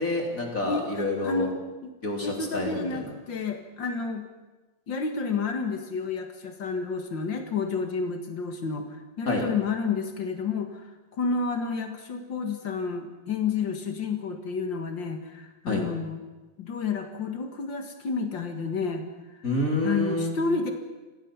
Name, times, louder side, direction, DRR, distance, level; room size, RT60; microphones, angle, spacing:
voice 1, 0.0-1.5 2.0-3.1 9.3-9.4 15.7-15.8 19.4-20.3, left 2 dB, 20° left, 0 dB, 3.5 m, -28 dB
voice 2, 0.6-1.6 2.2-4.2 4.9-10.9 11.1-16.2 16.6-19.1 19.3-19.4 19.8-20.7, left 4 dB, 70° left, 5 dB, 1.1 m, -30 dB
27.0 x 17.5 x 7.2 m, 1.2 s
omnidirectional pair, 5.1 m